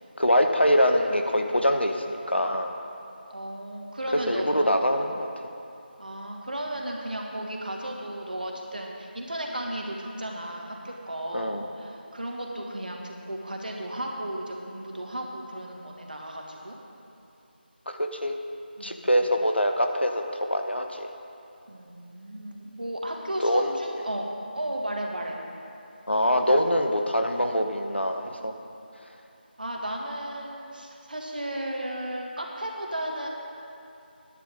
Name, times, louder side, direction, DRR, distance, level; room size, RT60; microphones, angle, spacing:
voice 1, 0.2-2.7 4.3-5.3 11.3-11.7 17.9-18.3 18.8-20.2 20.5-21.1 23.4-23.8 26.1-28.5, equal, 90° left, 4 dB, 1.3 m, -24 dB
voice 2, 3.3-4.8 6.0-16.8 18.8-19.1 21.7-24.3 24.5-25.4 29.6-33.3, right 1 dB, 55° right, 0 dB, 1.9 m, -34 dB
17.5 x 10.0 x 3.9 m, 2.7 s
figure-of-eight pair, 170°, 6 cm